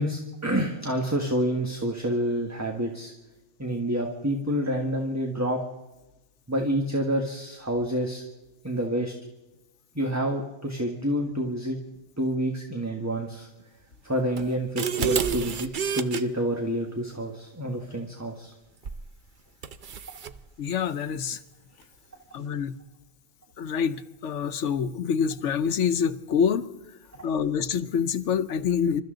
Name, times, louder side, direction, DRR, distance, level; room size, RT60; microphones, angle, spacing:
voice 1, 0.0-3.1 3.6-5.6 6.5-8.2 8.6-9.1 9.9-11.8 12.2-13.5 14.0-15.7 15.9-18.5, equal, 15° right, 2 dB, 1.5 m, -28 dB
sound 1, 14.4-16.2 18.8-19.1 19.6-20.4, right 7 dB, 50° right, 0.8 m, -29 dB
voice 2, 20.6-21.4 22.3-22.8 23.6-26.7 27.2-29.0, left 7 dB, 90° left, 12 dB, 1.2 m, -26 dB
27.5 x 13.5 x 3.9 m, 1.0 s
omnidirectional pair, 1.2 m